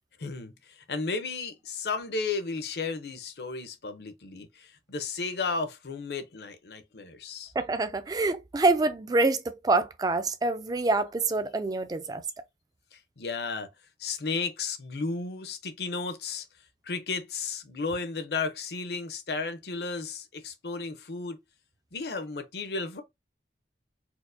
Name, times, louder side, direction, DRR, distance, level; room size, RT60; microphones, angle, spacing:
voice 1, 0.2-7.5 12.9-13.7 14.0-16.5 16.8-21.4 21.9-23.0, left 4 dB, 65° left, 0.7 m, -34 dB
voice 2, 7.6-12.2, right 3 dB, 20° right, 0.3 m, -26 dB
4.4 x 2.1 x 2.6 m
head